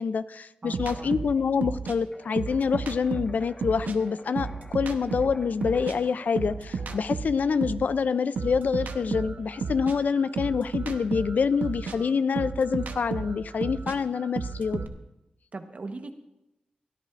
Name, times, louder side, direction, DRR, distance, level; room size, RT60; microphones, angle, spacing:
voice 1, 0.0-14.8, left 5 dB, 65° left, 15 dB, 0.4 m, -26 dB
voice 2, 0.6-1.2 15.5-16.1, right 3 dB, 50° right, 7 dB, 1.1 m, -39 dB
sound 1, 0.7-4.0 4.3-7.9 8.3-14.9, right 5 dB, 80° right, 0.9 m, -33 dB
sound 2, 2.1-7.1, left 1 dB, 25° left, 1.4 m, -50 dB
22.0 x 13.0 x 2.5 m, 0.94 s
cardioid pair, 75°, 3 cm